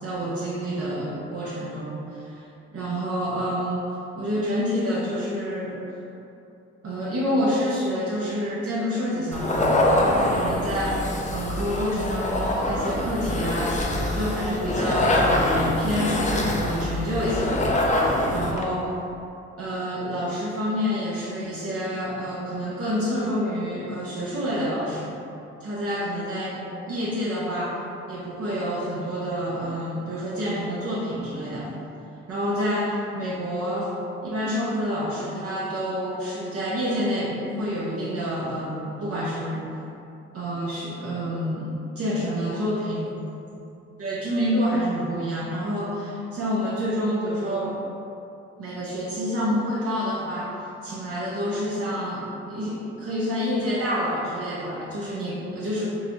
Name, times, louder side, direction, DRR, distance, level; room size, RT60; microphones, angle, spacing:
voice 1, 0.0-2.4 2.7-3.8 4.2-5.8 6.8-11.0 11.3-17.6 18.3-18.8 19.6-25.2 25.6-26.6 26.9-27.8 28.1-31.7 32.3-33.9 34.2-39.7 40.3-43.1 44.0-47.8 48.6-50.5 50.8-55.9, equal, 50° right, -7 dB, 0.8 m, -28 dB
sound 1, 9.3-18.6, left 1 dB, 25° left, 0.5 m, -24 dB
4.0 x 2.4 x 3.0 m, 2.7 s
supercardioid pair, 55°, 29 cm